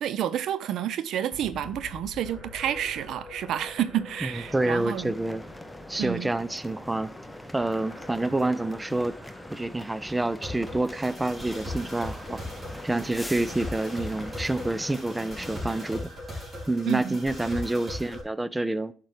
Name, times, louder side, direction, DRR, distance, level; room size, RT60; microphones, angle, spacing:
voice 1, 0.0-5.1 6.0-6.3 16.9-17.2, right 10 dB, 75° right, 0.6 m, -29 dB
sound 1, 1.3-8.0, left 7 dB, 70° left, 1.1 m, -49 dB
sound 2, 2.2-18.2, left 1 dB, 30° right, 4.4 m, -41 dB
voice 2, 4.2-5.5 5.9-7.1 7.5-9.2 9.5-12.4 12.8-16.1 16.7-18.9, right 2 dB, 15° right, 0.4 m, -28 dB
sound 3, 4.3-16.0, left 1 dB, 5° left, 0.8 m, -43 dB
10.0 x 5.9 x 3.4 m
cardioid pair, 90°, 0 cm